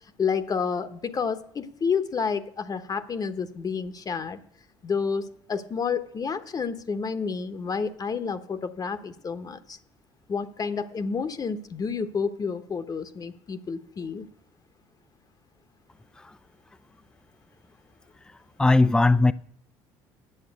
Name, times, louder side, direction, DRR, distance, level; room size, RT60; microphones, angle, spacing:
voice 1, 0.2-4.4 4.8-9.8 10.3-14.2, left 5 dB, 35° left, 1.0 m, -30 dB
voice 2, 18.6-19.3, left 2 dB, 5° left, 0.4 m, -19 dB
8.9 x 7.4 x 8.2 m
supercardioid pair, 75°, 11 cm